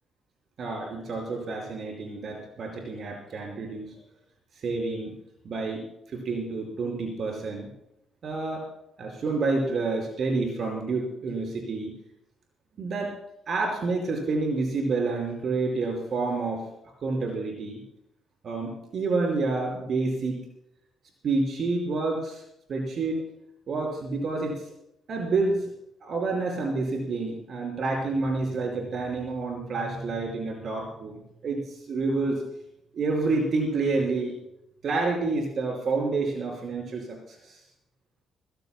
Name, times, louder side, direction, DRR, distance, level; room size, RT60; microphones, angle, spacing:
voice 1, 0.6-4.0 4.5-5.2 5.4-7.7 8.2-8.7 9.0-11.9 12.8-13.1 13.5-16.7 17.0-17.8 18.4-20.4 21.2-22.4 22.7-23.2 23.7-24.7 25.1-25.7 26.0-32.3 32.9-34.4 34.8-37.6, right 3 dB, 55° right, 1 dB, 5.0 m, -29 dB
27.0 x 15.5 x 2.2 m, 0.79 s
cardioid pair, 90°, 0 cm